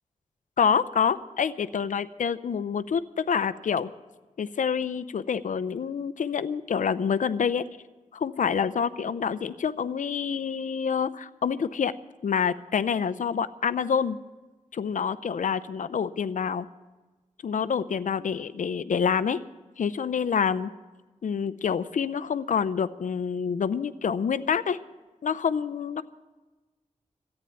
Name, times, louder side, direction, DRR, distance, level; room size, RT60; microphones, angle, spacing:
voice 1, 0.6-3.9 4.4-7.6 8.1-11.9 12.2-14.2 14.7-16.7 17.4-19.4 19.8-20.7 21.2-24.8 25.2-26.0, left 6 dB, 80° left, 13 dB, 0.5 m, -27 dB
14.0 x 9.0 x 9.4 m, 1.2 s
wide cardioid pair, 105°, 13 cm